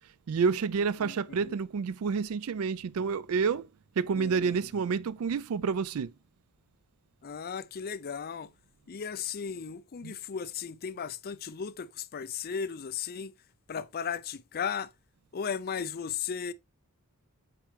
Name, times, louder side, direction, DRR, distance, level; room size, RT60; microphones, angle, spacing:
voice 1, 0.3-3.7 4.0-6.1 10.0-10.1, right 5 dB, 70° right, 0.4 m, -29 dB
voice 2, 1.0-1.6 4.1-4.7 7.2-8.5 8.9-13.3 13.7-14.9 15.3-16.5, left 7 dB, 45° left, 0.5 m, -36 dB
7.7 x 4.3 x 3.4 m
head